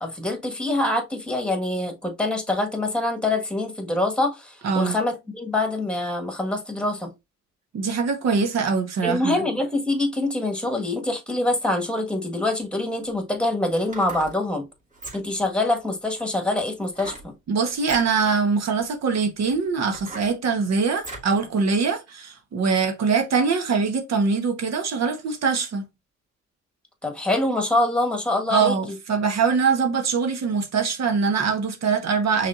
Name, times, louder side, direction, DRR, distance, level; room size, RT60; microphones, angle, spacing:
voice 1, 0.0-7.1 9.0-14.7 15.1-17.3 27.0-28.8, left 2 dB, 5° left, 1.5 m, -25 dB
voice 2, 4.6-5.0 7.7-9.4 17.5-25.8 28.5-32.5, right 5 dB, 60° right, 1.1 m, -23 dB
sound 1, 13.8-14.4 14.9-15.5 16.9-17.3 17.8-18.1 18.8-18.9 19.5-21.4 21.8-21.9, right 2 dB, 25° right, 2.2 m, -39 dB
5.6 x 3.5 x 2.5 m
cardioid pair, 90°, 30 cm